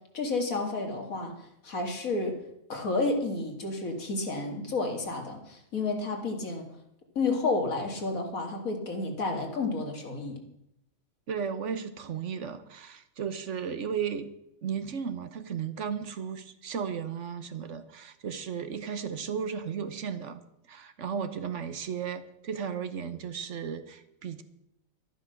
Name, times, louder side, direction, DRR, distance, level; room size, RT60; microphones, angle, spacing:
voice 1, 0.1-1.3 1.6-2.4 2.7-6.7 7.2-10.4, left 3 dB, 80° left, 3 dB, 2.5 m, -31 dB
voice 2, 11.3-14.3 14.6-20.4 20.7-24.4, right 7 dB, 60° right, 11 dB, 1.3 m, -35 dB
12.5 x 11.0 x 6.4 m, 0.80 s
omnidirectional pair, 1.4 m